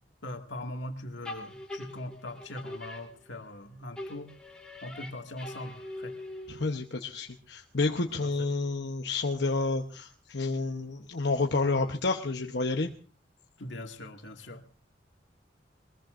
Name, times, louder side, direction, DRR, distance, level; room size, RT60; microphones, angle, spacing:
voice 1, 0.2-4.3 4.8-6.1 8.2-8.5 13.6-14.6, left 1 dB, 85° left, 4 dB, 2.1 m, -41 dB
sound 1, 1.2-3.6 4.0-6.8, left 1 dB, 5° left, 3.3 m, -43 dB
voice 2, 6.5-12.9, left 3 dB, 65° left, 3 dB, 1.0 m, -30 dB
22.5 x 20.5 x 2.6 m, 0.37 s
head